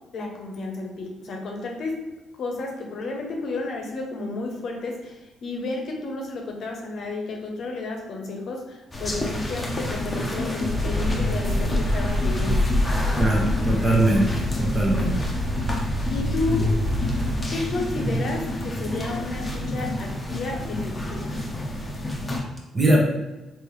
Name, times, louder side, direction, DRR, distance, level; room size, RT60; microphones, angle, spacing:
voice 1, 0.1-2.0 2.4-12.6 13.1-13.4 16.1-16.7 17.5-21.3, left 3 dB, 65° left, 1 dB, 0.8 m, -32 dB
sound 1, 8.9-22.4, left 1 dB, 20° left, 0.7 m, -29 dB
sound 2, 10.6-17.4, left 1 dB, 55° right, 0.8 m, -26 dB
voice 2, 13.2-14.2 14.6-15.1 22.7-23.1, right 1 dB, 30° right, -2 dB, 1.0 m, -20 dB
3.2 x 2.9 x 3.2 m, 1.1 s
cardioid pair, 90°, 0 cm